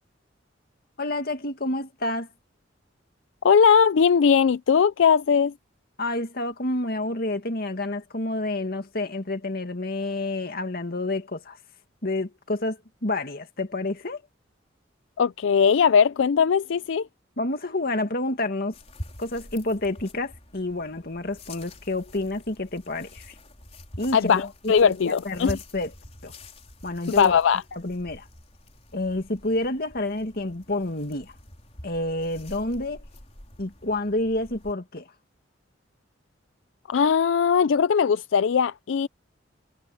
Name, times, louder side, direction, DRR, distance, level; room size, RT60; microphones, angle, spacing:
voice 1, 1.0-2.3 6.0-11.6 12.0-14.2 17.4-18.8 19.2-23.3 24.0-25.9 26.2-26.3 26.8-27.4 27.7-28.3 28.9-31.3 31.8-33.0 33.6-35.1, left 2 dB, 55° left, 2.2 m, -29 dB
voice 2, 3.4-5.5 15.2-17.1 24.1-25.5 27.1-27.6 36.9-39.1, left 6 dB, 80° left, 0.4 m, -20 dB
sound 1, 18.7-34.7, left 1 dB, 35° left, 4.4 m, -45 dB
head